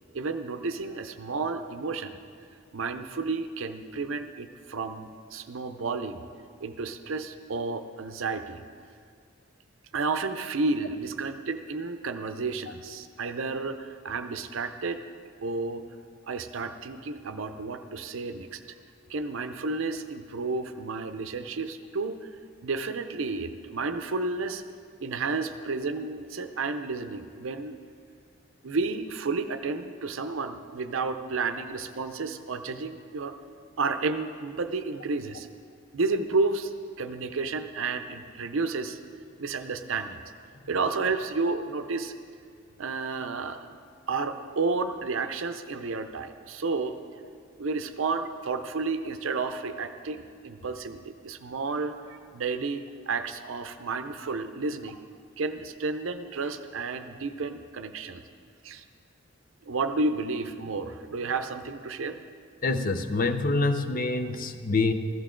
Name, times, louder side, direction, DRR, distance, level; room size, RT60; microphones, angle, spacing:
voice 1, 0.1-2.2 2.7-6.3 6.6-8.6 9.9-15.0 15.4-15.9 16.3-18.6 19.1-22.3 22.6-24.6 25.0-27.8 28.6-33.4 33.8-35.5 35.9-36.7 37.0-39.0 39.4-40.2 40.7-42.1 42.8-43.7 44.1-47.0 47.6-55.0 55.4-58.3 58.6-58.8 59.6-62.2, right 3 dB, 70° right, 8 dB, 0.6 m, -31 dB
voice 2, 62.6-64.9, left 3 dB, 40° left, 9 dB, 0.6 m, -26 dB
15.5 x 13.5 x 3.8 m, 2.2 s
head